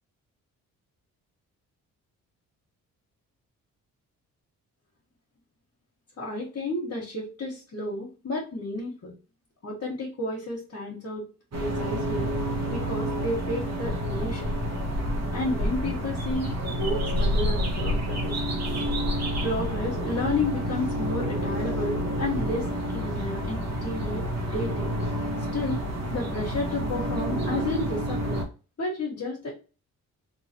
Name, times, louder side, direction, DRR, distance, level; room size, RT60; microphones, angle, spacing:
voice 1, 6.2-9.1 9.6-11.2 11.6-12.3 12.7-14.5 15.3-18.4 19.4-24.2 24.5-24.9 25.5-25.8 26.1-28.4 28.8-29.5, left 2 dB, 50° left, -5 dB, 1.4 m, -31 dB
sound 1, 11.5-28.4, equal, 45° right, 1.3 m, -29 dB
3.1 x 3.0 x 2.9 m, 0.33 s
cardioid pair, 65°, 35 cm